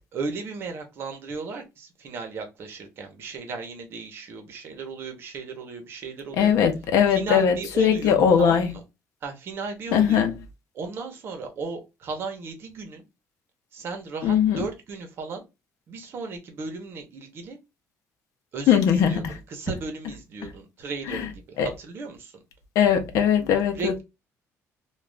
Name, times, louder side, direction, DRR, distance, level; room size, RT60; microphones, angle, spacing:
voice 1, 0.1-6.5 7.1-8.8 9.2-10.3 10.7-13.0 13.7-15.4 15.9-17.6 18.5-22.3 23.7-24.0, right 4 dB, 45° right, 0.8 m, -35 dB
voice 2, 6.4-8.7 9.9-10.3 14.2-14.7 18.7-19.3 21.1-21.3 21.6-21.7 22.8-24.0, left 8 dB, 70° left, 0.6 m, -20 dB
2.4 x 2.3 x 3.2 m
cardioid pair, 165°, 6 cm